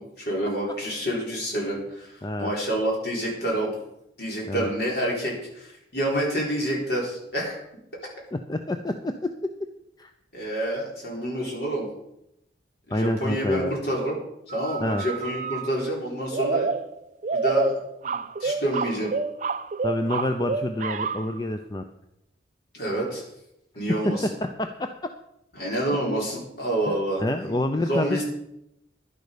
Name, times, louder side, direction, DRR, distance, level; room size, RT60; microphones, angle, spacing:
voice 1, 0.0-3.8 4.2-7.6 10.3-11.9 12.9-14.2 14.5-16.7 17.3-19.1 22.7-23.2 23.7-24.3 25.5-27.5 27.9-28.2, right 1 dB, 55° left, -2 dB, 4.1 m, -28 dB
voice 2, 2.2-2.5 4.5-4.7 8.3-9.3 10.0-10.1 12.9-13.7 14.8-15.0 19.8-21.8 24.0-24.9 27.2-28.2, left 1 dB, 20° left, 6 dB, 0.5 m, -27 dB
sound 1, 14.5-15.7 16.3-21.4, right 4 dB, 40° right, 0.4 m, -29 dB
11.0 x 10.5 x 5.1 m, 0.81 s
head